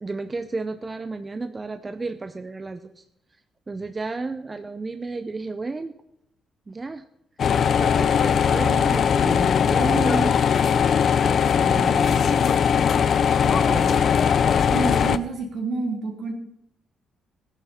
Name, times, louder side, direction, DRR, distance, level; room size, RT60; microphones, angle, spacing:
voice 1, 0.0-3.0 3.7-5.9 6.7-7.0 7.4-10.3 11.6-12.6 13.4-14.0, right 3 dB, 25° right, 9 dB, 0.7 m, -32 dB
sound 1, 7.4-15.2, left 7 dB, 55° left, 0.6 m, -20 dB
voice 2, 14.7-16.3, right 3 dB, 65° right, 0 dB, 3.7 m, -28 dB
16.0 x 11.0 x 4.4 m, 0.76 s
cardioid pair, 90°, 0 cm